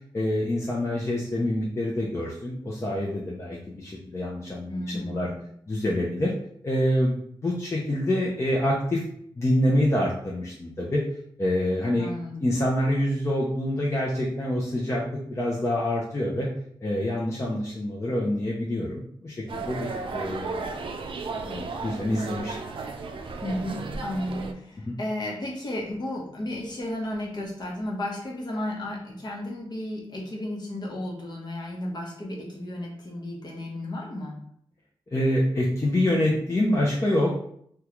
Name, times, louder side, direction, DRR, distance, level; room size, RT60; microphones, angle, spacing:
voice 1, 0.1-5.3 5.7-6.3 6.6-9.0 9.4-11.0 11.4-12.1 12.4-16.5 16.8-20.7 21.5-22.5 24.9-25.0 35.1-37.3, left 1 dB, 30° left, -4 dB, 0.6 m, -26 dB
voice 2, 4.7-5.5 12.0-12.4 23.4-34.4, left 1 dB, 50° left, -2 dB, 0.9 m, -33 dB
sound 1, 19.5-24.5, right 4 dB, 65° right, 0.4 m, -34 dB
3.6 x 2.3 x 3.0 m, 0.66 s
wide cardioid pair, 105°, 9 cm